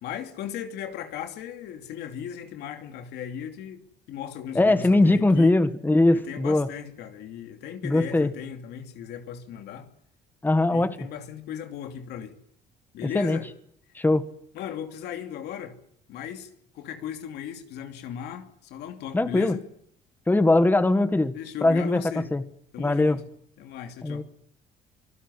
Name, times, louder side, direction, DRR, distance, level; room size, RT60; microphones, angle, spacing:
voice 1, 0.0-5.6 6.1-9.9 10.7-12.4 12.9-13.5 14.5-15.8 16.1-19.6 21.3-22.3 22.7-23.3 23.6-24.2, left 9 dB, 80° left, 2.8 m, -37 dB
voice 2, 4.5-6.7 7.8-8.3 10.4-10.9 13.0-13.4 13.9-14.3 19.1-19.5 20.3-21.3 21.6-22.0 22.3-22.4 22.8-23.2 24.0-24.2, left 2 dB, 10° left, 1.5 m, -21 dB
25.5 x 16.5 x 9.8 m
cardioid pair, 110°, 17 cm